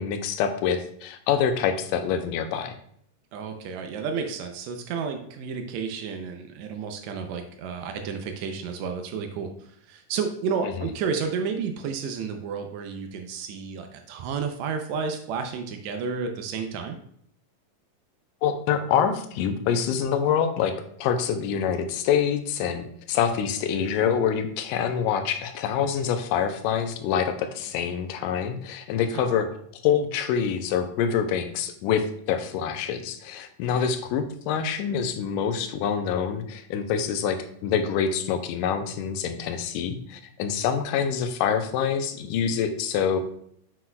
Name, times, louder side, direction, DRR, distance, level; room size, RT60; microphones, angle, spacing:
voice 1, 0.0-2.8 18.4-20.7 21.0-29.5 29.8-43.2, left 7 dB, 80° left, 8 dB, 2.1 m, -26 dB
voice 2, 3.3-17.0 29.1-29.3 33.7-33.9, right 5 dB, 85° right, 5 dB, 1.5 m, -31 dB
7.6 x 5.8 x 2.3 m, 0.66 s
omnidirectional pair, 3.9 m